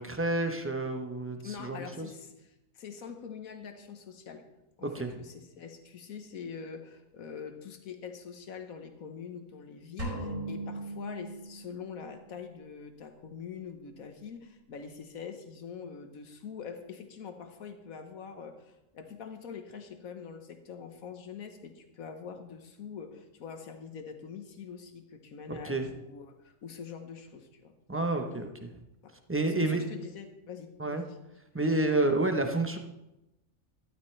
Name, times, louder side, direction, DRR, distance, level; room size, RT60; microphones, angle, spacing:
voice 1, 0.0-2.1 4.8-5.1 25.6-25.8 27.9-28.7 29.3-29.8 30.8-31.0 31.5-32.8, right 2 dB, 10° right, 5 dB, 0.7 m, -29 dB
voice 2, 1.4-4.4 4.8-28.6 29.0-29.2 29.5-31.2, left 6 dB, 85° left, 7 dB, 1.5 m, -44 dB
sound 1, 10.0-12.0, right 2 dB, 60° right, 4.4 m, -38 dB
12.5 x 12.0 x 3.3 m, 0.94 s
omnidirectional pair, 1.4 m